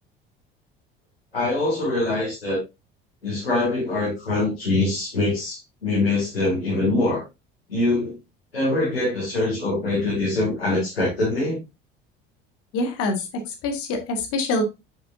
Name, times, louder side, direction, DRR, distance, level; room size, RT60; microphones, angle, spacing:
voice 1, 1.3-2.6 3.2-7.2 7.7-8.2 8.5-11.6, left 2 dB, 80° left, 2.4 m, -23 dB
voice 2, 12.7-14.6, left 2 dB, 50° left, 1.8 m, -25 dB
7.5 x 5.6 x 2.6 m
figure-of-eight pair, 65°, 30 cm